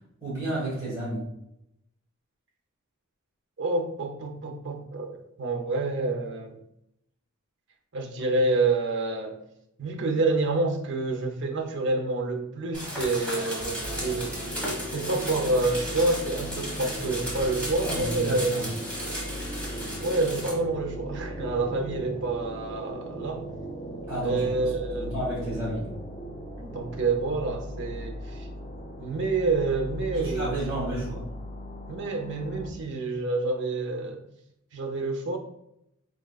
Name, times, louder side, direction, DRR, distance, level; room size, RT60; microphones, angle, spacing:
voice 1, 0.2-1.3 17.8-18.7 24.1-25.9 30.1-31.2, right 1 dB, 15° right, -9 dB, 1.5 m, -32 dB
voice 2, 3.6-6.6 7.9-9.4 9.8-14.3 14.9-18.5 20.0-23.5 24.2-25.1 26.6-28.5 29.0-31.2 31.9-34.2 34.7-35.4, right 3 dB, 55° right, 3 dB, 0.6 m, -28 dB
sound 1, 12.7-20.5, equal, 5° left, 1.2 m, -35 dB
sound 2, 13.8-32.7, equal, 30° left, 0.8 m, -38 dB
4.7 x 3.7 x 2.3 m, 0.79 s
head